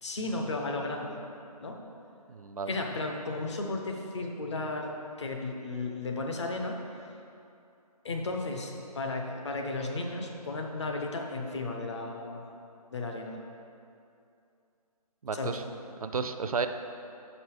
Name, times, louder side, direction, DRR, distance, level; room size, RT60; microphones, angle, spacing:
voice 1, 0.0-1.2 1.6-1.8 2.7-6.8 8.0-12.4 12.9-13.4 15.3-15.6, left 2 dB, 45° left, 2 dB, 0.8 m, -34 dB
voice 2, 2.3-2.7 15.2-15.6 16.0-16.7, right 5 dB, 65° right, 8 dB, 0.4 m, -32 dB
5.9 x 5.4 x 4.8 m, 2.6 s
figure-of-eight pair, 160°, 20 cm